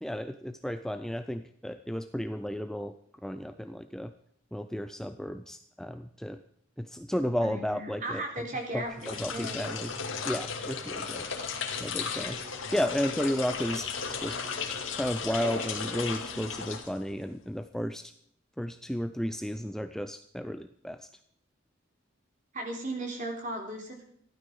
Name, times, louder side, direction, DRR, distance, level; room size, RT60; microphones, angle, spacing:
voice 1, 0.0-3.0 3.2-4.1 4.5-6.4 6.8-8.2 8.7-9.9 10.2-11.3 11.8-12.4 12.7-14.4 14.9-18.1 18.6-21.1, equal, 5° left, 9 dB, 0.4 m, -33 dB
voice 2, 7.4-9.7 22.5-24.0, right 1 dB, 40° right, 1 dB, 3.6 m, -36 dB
sound 1, 8.9-17.3, left 5 dB, 80° left, 2.2 m, -35 dB
15.0 x 12.5 x 5.3 m, 0.65 s
head